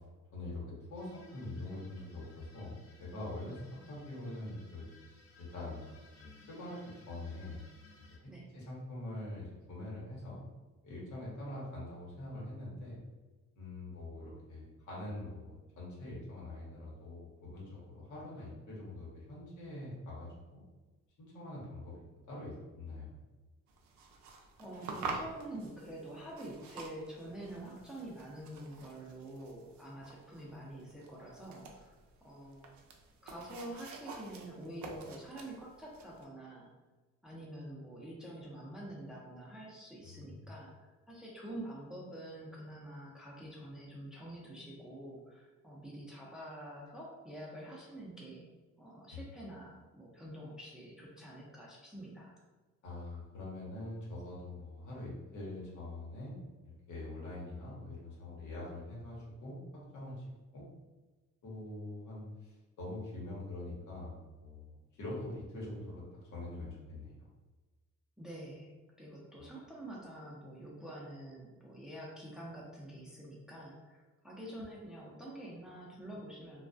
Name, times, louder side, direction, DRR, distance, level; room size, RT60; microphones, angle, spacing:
voice 1, 0.3-4.9 5.4-5.8 6.2-7.6 8.2-10.4 10.8-13.0 13.6-20.6 21.2-22.0 22.3-23.1 40.0-40.4 49.1-49.2 52.8-60.2 60.5-60.7 61.4-64.1 64.4-67.3 69.3-69.5, left 2 dB, 75° left, -5 dB, 1.0 m, -44 dB
sound 1, 0.9-8.2, left 3 dB, 50° left, 0.6 m, -61 dB
sound 2, 23.7-36.3, right 4 dB, 70° right, 0.5 m, -48 dB
voice 2, 24.6-32.8 33.2-36.7 37.2-48.5 48.8-52.3 68.2-68.7 69.0-76.6, right 1 dB, ahead, -4 dB, 0.5 m, -47 dB
2.2 x 2.2 x 2.5 m, 1.2 s
cardioid pair, 90°, 30 cm